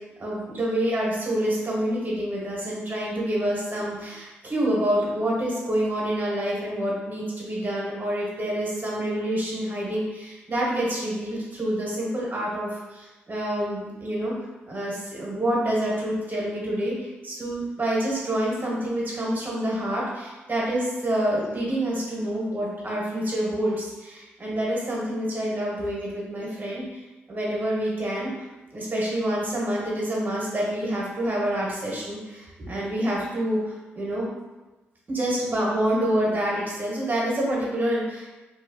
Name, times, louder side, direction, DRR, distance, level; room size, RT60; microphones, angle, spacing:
voice 1, 0.2-14.3 14.7-27.0 27.3-28.3 28.7-34.3 35.1-38.3, right 1 dB, 40° right, -4 dB, 1.2 m, -27 dB
2.9 x 2.3 x 2.7 m, 1.2 s
hypercardioid pair, 45°, 5 cm